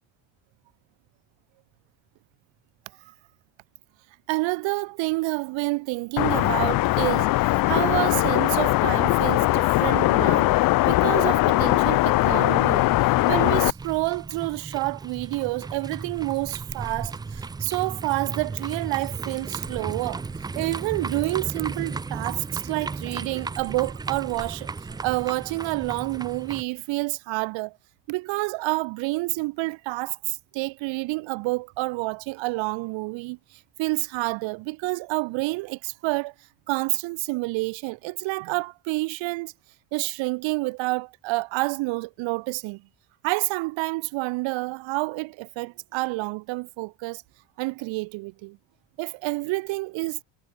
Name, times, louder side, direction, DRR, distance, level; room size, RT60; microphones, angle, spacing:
voice 1, 4.3-10.5 10.9-12.8 13.3-20.2 20.5-24.7 25.0-27.7 28.1-33.4 33.8-36.3 36.7-39.5 39.9-42.8 43.2-47.2 47.6-48.6 49.0-50.2, right 24 dB, 80° right, 1.0 m, -28 dB
sound 1, 6.2-13.7, left 19 dB, 50° left, 0.5 m, -20 dB
sound 2, 12.2-26.6, right 4 dB, 10° right, 0.4 m, -35 dB
cardioid pair, 165°, 45 cm